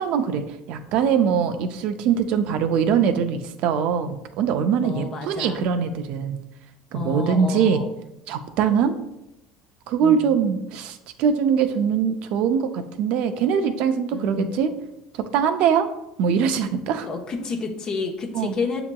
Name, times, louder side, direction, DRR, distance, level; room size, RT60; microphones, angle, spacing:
voice 1, 0.0-6.4 6.9-7.8 8.3-8.9 9.9-14.7 15.2-15.9 16.2-17.1 18.3-18.5, right 7 dB, 65° right, 8 dB, 0.4 m, -22 dB
voice 2, 4.8-5.6 6.9-7.9 10.0-10.4 14.1-14.5 17.0-18.8, left 4 dB, 40° left, 3 dB, 0.8 m, -30 dB
7.0 x 2.9 x 2.2 m, 0.88 s
supercardioid pair, 85°, 2 cm